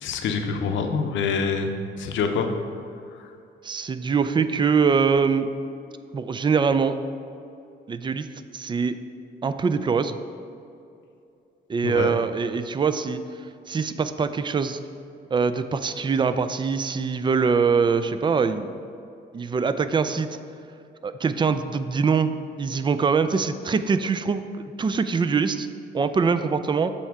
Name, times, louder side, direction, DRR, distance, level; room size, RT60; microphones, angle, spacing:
voice 1, 0.0-1.7 2.0-2.5 11.8-12.1, left 5 dB, 70° left, 5 dB, 0.6 m, -25 dB
voice 2, 3.6-5.5 6.1-7.0 7.9-8.3 8.5-9.0 9.4-10.2 11.7-13.2 13.7-14.8 15.3-18.8 19.3-20.3 21.0-22.3 22.6-24.5 24.8-25.7 25.9-26.9, right 5 dB, 25° right, 11 dB, 0.3 m, -23 dB
7.1 x 4.4 x 4.6 m, 2.6 s
cardioid pair, 90°, 20 cm